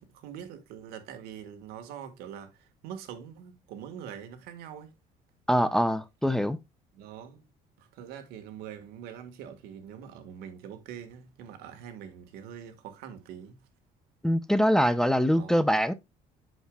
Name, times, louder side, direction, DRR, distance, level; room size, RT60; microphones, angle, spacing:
voice 1, 0.0-4.9 6.9-7.4 7.8-13.6 15.3-15.7, right 9 dB, 85° right, 1.6 m, -44 dB
voice 2, 5.5-6.6 14.2-15.9, equal, 5° left, 0.5 m, -24 dB
8.1 x 6.5 x 2.3 m
cardioid pair, 140°, 16 cm